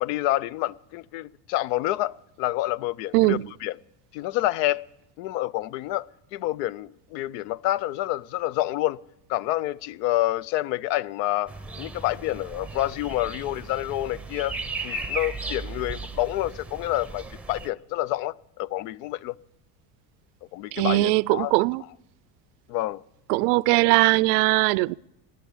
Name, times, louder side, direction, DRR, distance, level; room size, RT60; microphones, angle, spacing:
voice 1, 0.0-3.7 4.1-4.8 5.2-6.0 6.3-9.0 9.3-11.5 11.8-14.5 14.8-19.4 20.5-21.5 22.7-23.0, left 16 dB, 85° left, 0.6 m, -28 dB
voice 2, 3.1-3.5 20.7-21.8 23.3-24.9, right 22 dB, 75° right, 0.5 m, -20 dB
sound 1, 11.5-17.7, right 3 dB, 5° right, 0.6 m, -36 dB
17.5 x 10.5 x 7.3 m
supercardioid pair, 135°, 47 cm